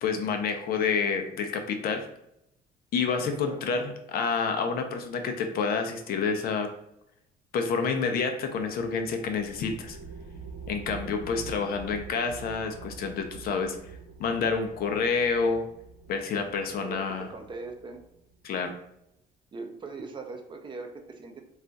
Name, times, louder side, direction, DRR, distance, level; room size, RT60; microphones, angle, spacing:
voice 1, 0.0-2.1 2.9-6.7 7.5-10.0 10.7-13.8 14.2-15.7 16.1-17.3 18.4-18.7, left 5 dB, 65° left, 5 dB, 0.5 m, -28 dB
voice 2, 3.3-3.6 16.8-18.0 19.5-21.4, right 3 dB, 30° right, 4 dB, 0.5 m, -40 dB
sound 1, 8.5-18.5, right 5 dB, 65° right, 0.8 m, -46 dB
2.4 x 2.3 x 3.9 m, 0.79 s
cardioid pair, 110°, 17 cm